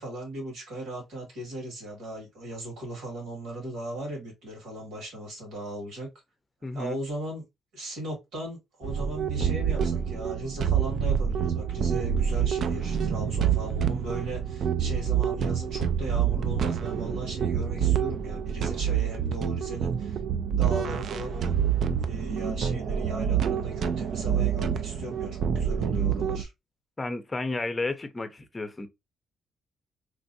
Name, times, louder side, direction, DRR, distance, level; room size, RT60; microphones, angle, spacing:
voice 1, 0.0-6.1 6.7-7.4 7.7-20.2 20.5-21.5 22.0-26.5, right 1 dB, 90° right, 2.0 m, -37 dB
voice 2, 6.6-7.0 27.0-28.9, left 2 dB, 25° left, 0.6 m, -32 dB
sound 1, 8.8-26.4, right 8 dB, 65° right, 0.3 m, -27 dB
3.1 x 2.5 x 2.6 m
cardioid pair, 90°, 0 cm